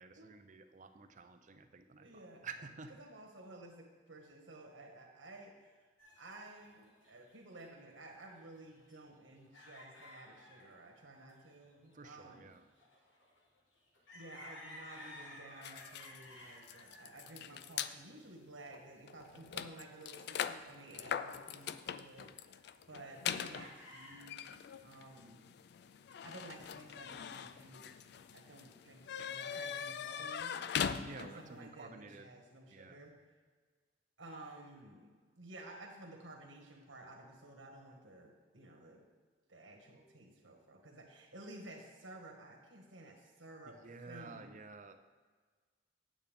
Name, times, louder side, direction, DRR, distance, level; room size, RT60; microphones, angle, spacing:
voice 1, 0.0-2.1 2.4-2.9 11.9-12.6 31.0-32.3 32.7-33.0 43.8-45.0, right 4 dB, 40° right, 8 dB, 0.6 m, -51 dB
voice 2, 2.0-2.5 3.0-5.9 6.2-12.5 14.1-22.4 22.9-24.5 24.8-25.4 26.2-28.0 28.3-30.6 31.2-33.1 34.2-39.1 39.5-43.8 44.1-44.5, right 2 dB, 80° right, 1 dB, 1.7 m, -53 dB
sound 1, 6.0-7.8 8.1-10.7 11.3-11.4 11.9-18.9 19.5-19.8 20.0-21.4 21.7-22.6 22.9-24.3, left 1 dB, 75° left, 1.7 m, -56 dB
sound 2, 15.6-17.9 18.7-18.8 19.1-31.5, left 8 dB, 60° left, 0.3 m, -42 dB
9.2 x 8.3 x 3.5 m, 1.5 s
head